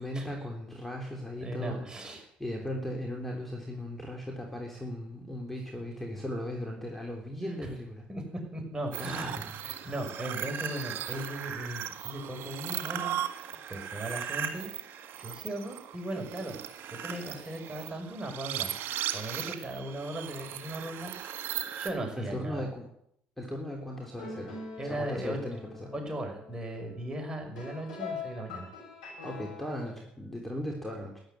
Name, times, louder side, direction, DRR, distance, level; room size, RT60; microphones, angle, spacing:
voice 1, 0.0-8.1 8.9-9.5 22.2-22.9 23.4-24.6 24.8-25.9 29.2-31.2, equal, 5° left, 1 dB, 3.4 m, -37 dB
voice 2, 1.4-2.2 8.1-8.2 8.5-9.3 9.6-13.2 13.7-14.7 15.1-16.6 16.9-18.7 19.1-21.5 21.8-22.7 24.8-25.4 25.9-28.7, right 1 dB, 20° right, 2 dB, 6.1 m, -37 dB
sound 1, 8.9-21.9, right 10 dB, 65° right, 1.9 m, -37 dB
sound 2, 23.9-29.9, left 4 dB, 90° left, 6.4 m, -43 dB
13.5 x 10.5 x 8.4 m, 0.71 s
hypercardioid pair, 60°, 4 cm